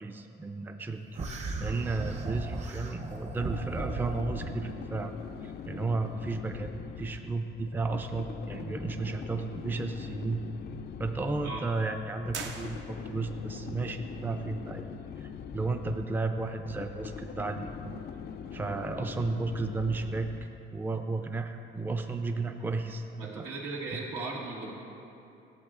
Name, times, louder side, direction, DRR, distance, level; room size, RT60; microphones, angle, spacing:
voice 1, 0.0-1.0 1.3-5.1 5.4-6.7 7.0-10.4 11.0-14.9 15.2-18.0 18.5-20.3 20.7-23.5 23.9-24.0, right 3 dB, 10° right, 6 dB, 0.4 m, -33 dB
sound 1, 1.1-4.6, right 3 dB, 35° right, 0.8 m, -36 dB
sound 2, 3.1-20.7, left 7 dB, 55° left, 0.4 m, -42 dB
sound 3, 12.3-13.3, right 5 dB, 70° right, 0.7 m, -41 dB
voice 2, 23.2-24.7, right 3 dB, 90° right, -3 dB, 1.4 m, -37 dB
13.5 x 7.3 x 2.4 m, 2.8 s
cardioid pair, 90°, 20 cm